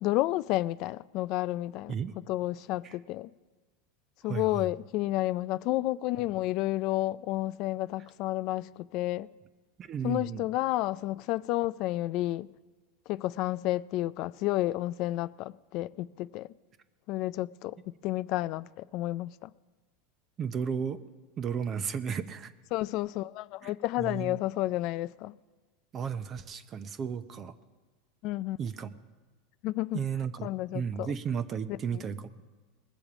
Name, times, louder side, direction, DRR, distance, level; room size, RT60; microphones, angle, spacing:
voice 1, 0.0-1.9 2.3-3.3 4.2-9.3 10.0-12.5 13.1-16.5 17.1-17.8 18.0-19.5 22.7-25.4 28.2-28.6 29.6-30.0 30.4-31.1 31.7-32.0, left 16 dB, 55° left, 0.3 m, -31 dB
voice 2, 4.2-4.7 9.8-10.4 20.4-21.0 21.4-22.5 23.6-24.4 25.9-27.5 28.6-28.9 29.9-32.3, right 7 dB, 30° right, 0.6 m, -34 dB
20.0 x 7.2 x 4.9 m
supercardioid pair, 120°, 0 cm